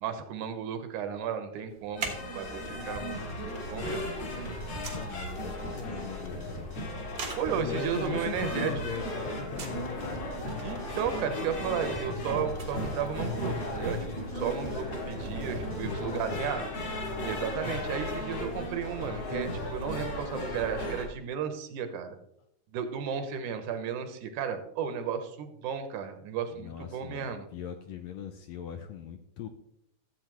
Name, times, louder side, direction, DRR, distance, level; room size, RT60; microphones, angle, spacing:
voice 1, 0.0-4.1 7.4-8.7 10.6-16.7 17.3-22.2 22.7-27.5, right 8 dB, 80° right, 8 dB, 2.4 m, -34 dB
sound 1, 1.7-16.8, right 4 dB, 50° right, 1.1 m, -47 dB
sound 2, 2.0-21.0, left 1 dB, 55° left, 3.0 m, -35 dB
sound 3, 2.0-16.5, equal, 15° left, 1.5 m, -49 dB
voice 2, 4.5-6.7 7.6-10.5 15.7-16.5 26.5-29.5, left 8 dB, 75° left, 7 dB, 1.6 m, -40 dB
14.0 x 8.0 x 3.1 m, 0.75 s
omnidirectional pair, 3.5 m